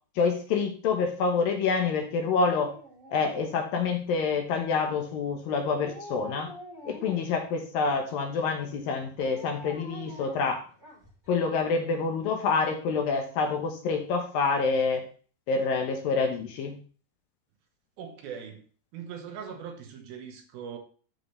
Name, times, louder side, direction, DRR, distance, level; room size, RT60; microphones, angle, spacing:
voice 1, 0.2-2.7 3.1-6.5 6.9-10.6 11.3-15.1 15.5-16.8, left 4 dB, 70° left, 2.5 m, -27 dB
Dog, 2.0-4.1 5.7-7.4 9.2-11.3 11.6-11.7, left 1 dB, 5° right, 2.7 m, -46 dB
voice 2, 18.0-18.6 18.9-20.8, right 7 dB, 70° right, 2.7 m, -40 dB
14.5 x 5.0 x 3.2 m
omnidirectional pair, 4.8 m